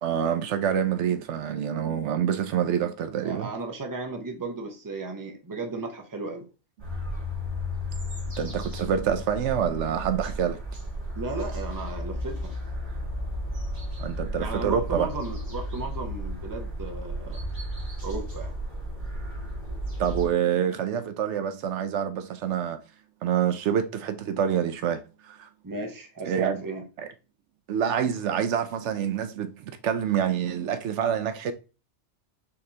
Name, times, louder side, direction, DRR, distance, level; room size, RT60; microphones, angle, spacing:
voice 1, 0.0-3.5 8.4-10.6 14.0-15.1 20.0-22.8 23.2-25.5 26.3-26.6 27.0-27.1 27.7-31.5, right 8 dB, 75° right, 0.9 m, -27 dB
voice 2, 3.2-6.5 11.2-12.5 14.4-17.5 18.0-18.6 25.6-26.8, right 3 dB, 20° right, 0.7 m, -35 dB
sound 1, 6.8-20.3, equal, 40° right, 1.9 m, -33 dB
5.8 x 3.3 x 2.8 m
omnidirectional pair, 1.2 m